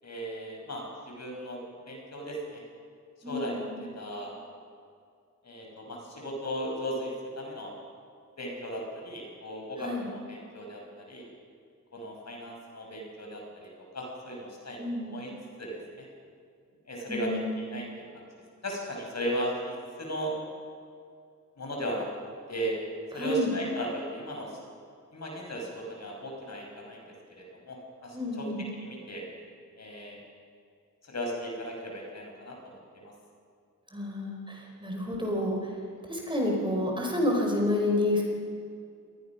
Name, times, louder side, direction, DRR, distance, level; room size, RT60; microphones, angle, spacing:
voice 1, 0.0-2.6 3.3-3.6 4.0-4.3 5.4-7.7 8.4-11.3 11.9-15.3 15.6-16.0 16.9-18.2 18.6-20.3 21.6-22.1 22.5-22.8 23.1-24.6 25.1-27.0 27.4-29.2 29.8-30.2 31.1-33.1, equal, 55° left, 0 dB, 6.0 m, -36 dB
voice 2, 3.2-3.8 9.8-10.1 14.8-15.1 17.1-17.7 23.1-23.5 28.1-28.6 33.9-35.7 36.1-38.2, left 1 dB, 15° right, -1 dB, 5.1 m, -29 dB
26.5 x 20.0 x 6.1 m, 2.3 s
wide cardioid pair, 100°, 31 cm